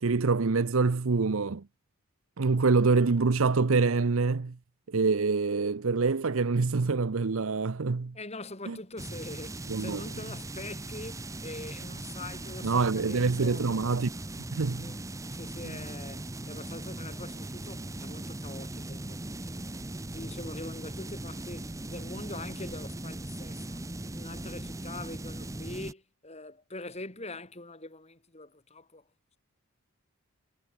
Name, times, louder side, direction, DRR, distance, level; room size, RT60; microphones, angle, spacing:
voice 1, 0.0-1.6 2.4-4.6 4.9-8.2 8.7-8.8 9.7-10.0 12.6-14.1 14.6-14.9, right 4 dB, 65° right, 0.7 m, -25 dB
voice 2, 8.1-14.0 14.8-15.0 15.3-19.7 20.1-23.8 24.1-29.0, left 2 dB, 30° left, 4.0 m, -43 dB
sound 1, 9.0-25.9, right 1 dB, 15° right, 0.8 m, -39 dB
head